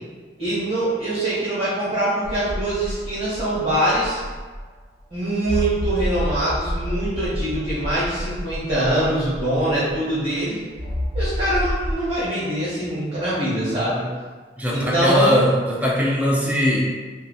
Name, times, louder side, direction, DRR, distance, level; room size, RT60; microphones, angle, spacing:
voice 1, 0.4-4.2 5.1-10.6 11.1-14.0 14.7-15.4, right 1 dB, 40° right, -11 dB, 1.2 m, -23 dB
sound 1, 2.2-4.8 5.4-10.1 10.8-12.0, equal, 80° left, 1.0 m, -29 dB
voice 2, 14.6-16.8, equal, 10° right, -4 dB, 0.4 m, -20 dB
2.6 x 2.5 x 2.3 m, 1.4 s
head